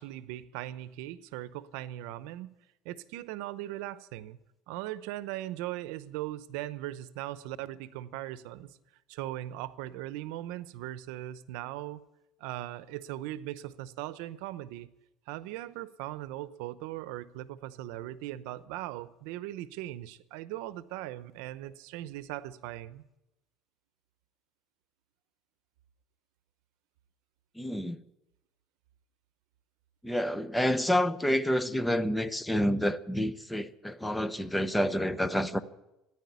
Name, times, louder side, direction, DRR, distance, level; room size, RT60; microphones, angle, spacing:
voice 1, 0.0-2.5 2.8-4.4 4.7-8.8 9.1-12.0 12.4-14.9 15.3-23.0, right 14 dB, 90° right, 0.7 m, -39 dB
voice 2, 27.6-28.0 30.0-35.6, equal, 5° left, 0.8 m, -28 dB
15.0 x 10.0 x 9.5 m
cardioid pair, 135°, 0 cm